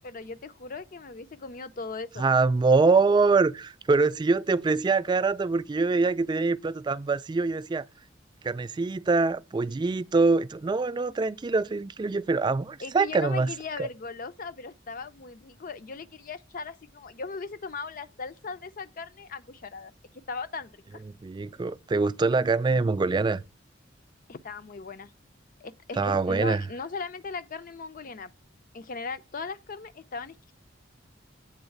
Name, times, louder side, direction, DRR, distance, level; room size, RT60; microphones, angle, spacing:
voice 1, 0.0-2.2 12.8-19.9 20.3-21.0 24.3-25.1 25.6-28.3 28.7-30.5, left 4 dB, 45° left, 0.5 m, -38 dB
voice 2, 2.2-7.9 8.4-13.5 21.2-23.4 26.0-26.6, right 4 dB, 25° right, 0.3 m, -24 dB
8.1 x 3.9 x 6.4 m
head